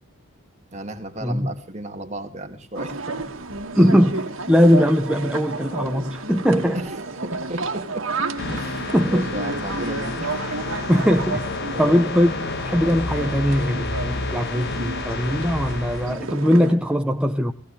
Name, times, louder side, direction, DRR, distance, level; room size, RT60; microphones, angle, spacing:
voice 1, 0.7-3.3 6.6-10.4 11.7-12.0, right 1 dB, 30° right, 2.3 m, -34 dB
sound 1, 2.7-16.7, right 3 dB, 60° right, 2.1 m, -32 dB
voice 2, 3.8-6.8 8.9-9.3 10.9-11.5 11.8-12.3 12.6-17.5, equal, 5° right, 0.8 m, -20 dB
sound 2, 8.4-16.2, left 3 dB, 50° left, 1.3 m, -30 dB
19.0 x 17.0 x 3.3 m
head